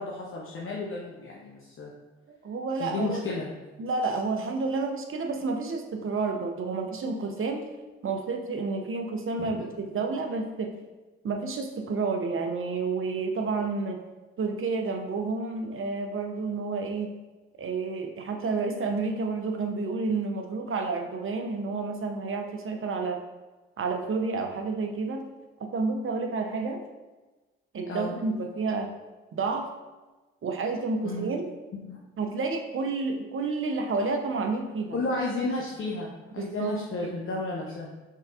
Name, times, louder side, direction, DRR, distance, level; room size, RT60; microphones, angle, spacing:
voice 1, 0.0-1.9 2.8-3.5 9.4-9.5 27.9-28.1 31.0-31.3 31.8-32.0 34.9-36.1 36.3-37.9, left 2 dB, 45° left, -3 dB, 0.9 m, -32 dB
voice 2, 2.3-3.2 3.8-7.7 8.0-10.7 11.2-14.0 14.4-17.1 17.6-23.2 23.8-25.3 25.6-26.8 27.7-28.9 29.3-29.7 30.4-31.5 32.2-35.0 36.4-36.7, right 4 dB, 40° right, 4 dB, 0.8 m, -30 dB
5.5 x 3.6 x 2.5 m, 1.2 s
hypercardioid pair, 40°, 31 cm